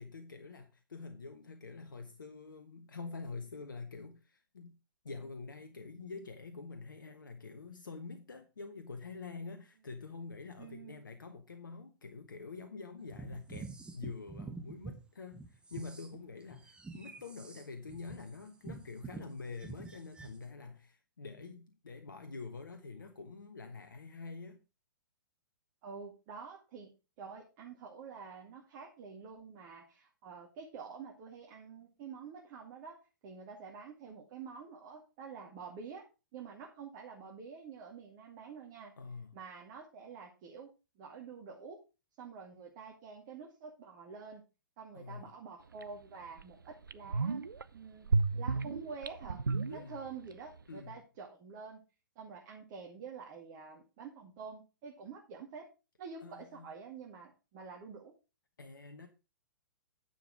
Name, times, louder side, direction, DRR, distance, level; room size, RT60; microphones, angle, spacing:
voice 1, 0.0-4.8 5.0-24.6 39.0-39.3 44.9-45.3 49.7-50.0 50.7-51.0 56.2-56.7 58.6-59.1, left 4 dB, 70° left, 1.2 m, -46 dB
voice 2, 10.6-11.0 25.8-26.9 27.2-36.0 36.3-38.9 39.3-40.7 41.0-41.8 42.2-44.4 44.8-47.4 47.7-48.1 48.3-49.4 49.7-51.8 52.2-55.7 56.0-58.1, right 5 dB, 40° right, 2.3 m, -48 dB
sound 1, 13.1-15.0 15.3-20.4, right 4 dB, 10° right, 1.4 m, -47 dB
sound 2, 45.8-45.9 46.4-46.5 46.8-47.6 48.1-50.3 50.6-50.7, right 4 dB, 75° right, 0.7 m, -32 dB
10.0 x 7.0 x 4.8 m
figure-of-eight pair, 110°, 11 cm